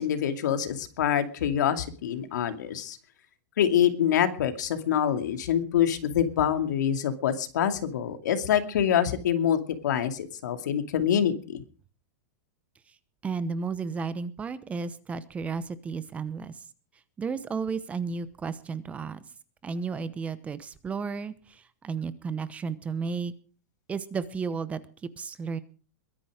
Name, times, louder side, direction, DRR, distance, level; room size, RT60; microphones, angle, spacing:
voice 1, 0.0-3.0 3.6-11.6, left 9 dB, 80° left, 8 dB, 2.4 m, -26 dB
voice 2, 13.2-16.6 17.2-19.2 19.6-23.3 23.9-24.8 25.2-25.6, right 5 dB, 15° right, 15 dB, 0.9 m, -33 dB
22.0 x 10.0 x 5.0 m, 0.39 s
supercardioid pair, 155°, 10 cm